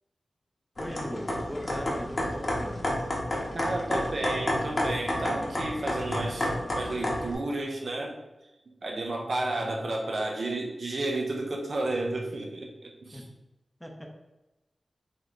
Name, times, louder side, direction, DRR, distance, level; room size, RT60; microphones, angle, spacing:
sound 1, 0.8-7.3, left 1 dB, 40° left, 0.9 m, -30 dB
voice 1, 0.8-2.9 13.1-13.2 13.8-14.1, equal, 5° left, 1 dB, 0.6 m, -39 dB
voice 2, 3.5-6.5 6.7-8.2 8.8-13.2, right 2 dB, 65° right, 1 dB, 0.6 m, -32 dB
3.3 x 2.9 x 4.0 m, 1.0 s
wide cardioid pair, 95°, 0 cm